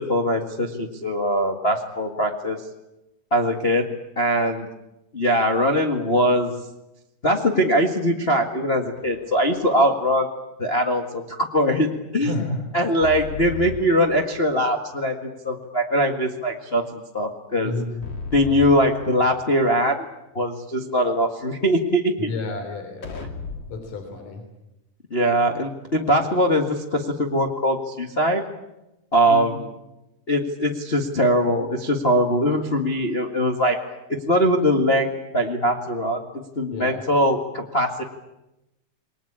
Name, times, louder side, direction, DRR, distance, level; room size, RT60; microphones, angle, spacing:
voice 1, 0.0-2.6 3.3-3.9 4.2-4.7 5.1-6.5 7.2-10.3 10.6-12.5 12.7-17.7 18.3-20.1 20.3-22.3 25.1-28.4 29.1-29.7 30.3-33.8 34.1-38.0, equal, 90° left, 2 dB, 0.5 m, -21 dB
sound 1, 8.9-9.7 13.0-14.7 18.0-19.7 23.0-23.9, left 5 dB, 35° left, 2.3 m, -36 dB
voice 2, 12.2-12.6 17.6-18.1 22.2-23.1 23.7-24.4 29.3-29.5 36.7-37.0, left 2 dB, 55° left, 5 dB, 4.9 m, -30 dB
28.0 x 21.5 x 8.8 m, 0.96 s
omnidirectional pair, 4.5 m